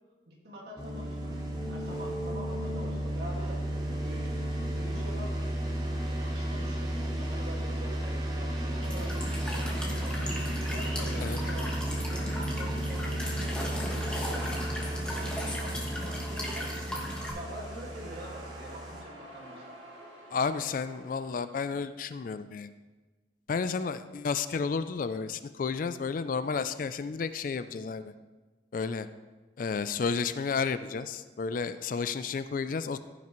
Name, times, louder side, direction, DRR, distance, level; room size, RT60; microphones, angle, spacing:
voice 1, 0.3-1.4 1.7-3.6 3.9-4.4 4.8-5.6 6.1-11.7 12.1-19.6 32.6-32.7, right 1 dB, 60° right, -2 dB, 1.9 m, -46 dB
sound 1, 0.8-19.0, right 1 dB, 20° right, 1.1 m, -33 dB
Walk footsteps / Chirp tweet / Stream, 8.8-17.3, equal, 5° left, 1.2 m, -37 dB
sound 2, 12.0-21.7, right 1 dB, 75° right, 2.4 m, -49 dB
voice 2, 20.3-22.7 23.5-28.1 28.7-29.1 29.6-33.0, left 5 dB, 45° left, 12 dB, 0.3 m, -32 dB
14.5 x 5.9 x 3.1 m, 1.3 s
head